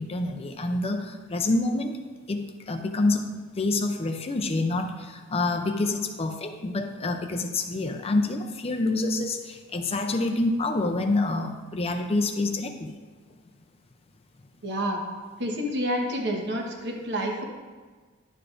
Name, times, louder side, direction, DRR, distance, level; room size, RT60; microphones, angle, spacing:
voice 1, 0.0-1.9 2.3-3.3 3.6-12.9, left 2 dB, 30° left, 5 dB, 0.5 m, -27 dB
voice 2, 14.6-15.0 15.4-17.4, equal, 55° right, 1 dB, 1.2 m, -28 dB
11.0 x 6.8 x 2.5 m, 1.4 s
head